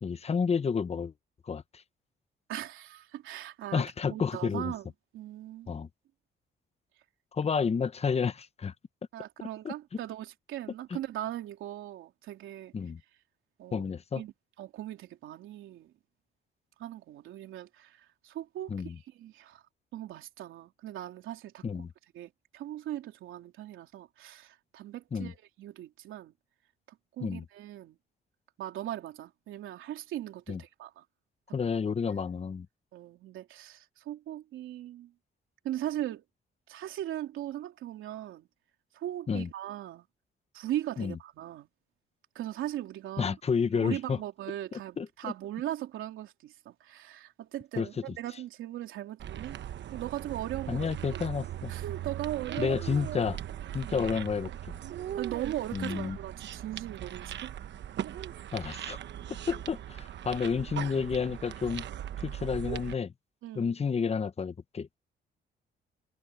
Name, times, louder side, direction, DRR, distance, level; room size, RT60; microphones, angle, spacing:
voice 1, 0.0-1.1 1.5-1.6 3.7-4.7 5.7-5.9 7.3-8.7 9.6-9.7 12.7-13.0 13.7-14.2 18.7-18.9 21.6-21.9 25.1-25.3 27.2-27.4 30.5-30.6 31.5-32.7 39.3-39.5 41.0-41.2 43.2-44.2 45.0-45.1 47.8-47.9 50.7-51.7 52.6-53.4 53.7-54.8 55.7-56.2 58.5-59.0 59.5-61.9 62.2-63.1 63.5-64.9, left 6 dB, 30° left, 0.9 m, -30 dB
voice 2, 2.5-3.8 4.1-5.8 9.1-12.7 13.6-13.8 14.2-14.3 14.6-15.9 16.8-19.6 19.9-21.8 22.1-26.3 27.2-28.0 28.6-31.0 32.2-32.3 32.9-35.1 35.6-36.2 36.7-38.5 38.9-40.0 40.5-41.7 42.3-43.4 43.7-49.6 49.9-50.9 51.1-51.3 51.7-52.8 53.2-53.3 53.8-54.1 55.2-57.5 63.4-63.7, right 13 dB, 85° right, 3.3 m, -39 dB
sound 1, 49.2-62.9, right 11 dB, 65° right, 1.0 m, -39 dB
cardioid pair, 90°, 20 cm